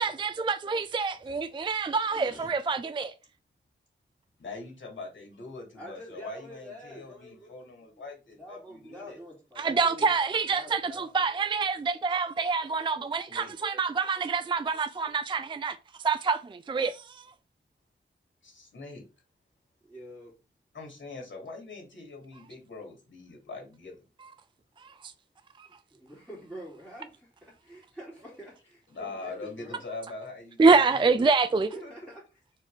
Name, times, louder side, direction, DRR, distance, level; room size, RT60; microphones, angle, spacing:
voice 1, 0.0-3.1 9.6-15.8 16.0-17.3 24.8-25.1 30.6-31.7, right 4 dB, 25° right, 0.3 m, -26 dB
voice 2, 2.1-2.5 5.7-7.5 8.4-10.1 10.5-11.2 19.8-20.3 25.6-29.8 31.7-32.2, equal, ahead, 3.2 m, -46 dB
voice 3, 4.4-9.2 13.3-13.5 18.4-19.1 20.7-24.0 28.9-31.3 31.8-32.1, left 3 dB, 70° left, 2.9 m, -43 dB
4.7 x 4.5 x 4.9 m
wide cardioid pair, 135°, 20 cm